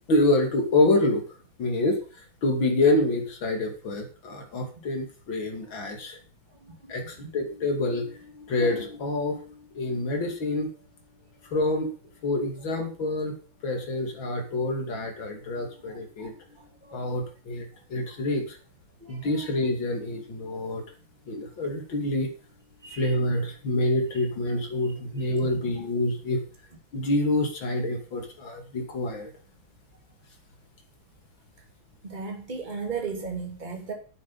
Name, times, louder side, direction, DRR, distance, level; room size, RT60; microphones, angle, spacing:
voice 1, 0.1-1.2 1.6-6.2 6.9-10.7 11.4-11.9 12.2-13.3 13.6-16.3 16.9-18.6 19.1-20.8 21.3-22.3 22.9-26.4 26.9-29.3, left 2 dB, 65° left, 3.2 m, -27 dB
voice 2, 6.6-6.9 16.2-16.3 16.9-17.0 19.0-19.3 22.8-23.0 32.0-33.9, right 5 dB, 20° right, 2.8 m, -35 dB
11.5 x 8.6 x 5.5 m
omnidirectional pair, 2.3 m